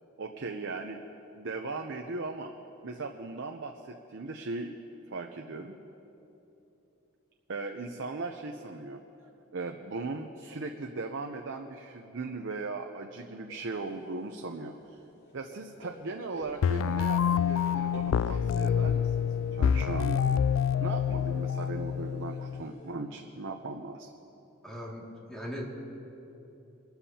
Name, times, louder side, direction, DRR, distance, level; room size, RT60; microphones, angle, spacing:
voice 1, 0.2-1.0 1.4-2.5 2.8-4.7 5.1-5.8 7.5-9.0 9.5-15.0 15.3-20.3 20.8-24.1, right 3 dB, 60° right, 4 dB, 0.6 m, -38 dB
sound 1, 13.5-13.9 14.2-22.9, equal, 50° left, 3.6 m, -51 dB
sound 2, 16.6-22.6, left 8 dB, 70° left, 0.3 m, -27 dB
voice 2, 24.6-25.7, equal, 5° left, -4 dB, 2.2 m, -39 dB
23.5 x 12.5 x 2.8 m, 2.9 s
head